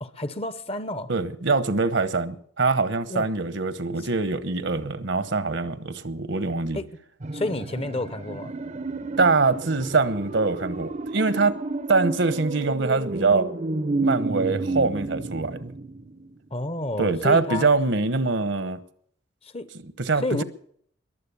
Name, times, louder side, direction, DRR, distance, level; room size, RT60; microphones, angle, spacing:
voice 1, 0.0-1.1 3.1-3.3 4.0-4.1 6.7-6.9 7.3-8.5 16.5-17.7 19.4-19.7 20.2-20.4, left 2 dB, 30° left, 0.9 m, -30 dB
voice 2, 1.1-6.8 9.2-11.6 11.9-13.5 14.0-15.7 17.0-18.8 19.8-20.4, right 3 dB, 65° right, 1.0 m, -23 dB
sound 1, 7.2-16.3 16.6-16.7, right 2 dB, 40° right, 0.7 m, -31 dB
22.0 x 7.7 x 7.0 m
head